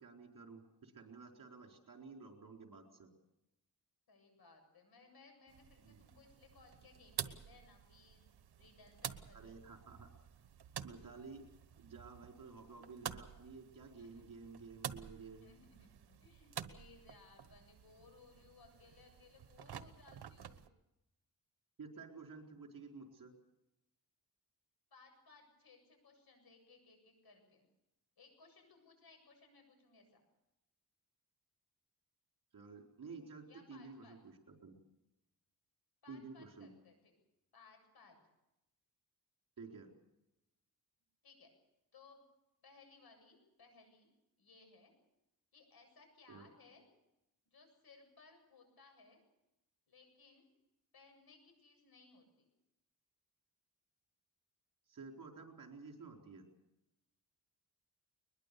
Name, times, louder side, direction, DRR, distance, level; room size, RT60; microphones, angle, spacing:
voice 1, 0.0-3.1 5.8-6.0 9.3-10.1 10.8-11.5 11.8-15.5 21.8-23.3 32.5-34.7 36.1-36.7 39.6-39.9 46.3-46.5 54.9-56.5, right 4 dB, 60° right, 2 dB, 4.3 m, -52 dB
voice 2, 4.1-8.2 8.6-9.6 14.0-14.5 15.4-20.7 24.9-27.7 28.2-30.2 33.5-34.2 36.0-37.1 37.5-38.2 41.2-41.5 41.9-42.2 42.6-44.1 44.4-44.9 45.5-46.8 47.5-49.2 49.9-50.5 50.9-52.5, left 4 dB, 75° left, 5 dB, 7.7 m, -63 dB
sound 1, 5.5-20.7, right 9 dB, 85° right, 1.2 m, -50 dB
21.5 x 21.5 x 6.9 m, 0.90 s
wide cardioid pair, 110°, 38 cm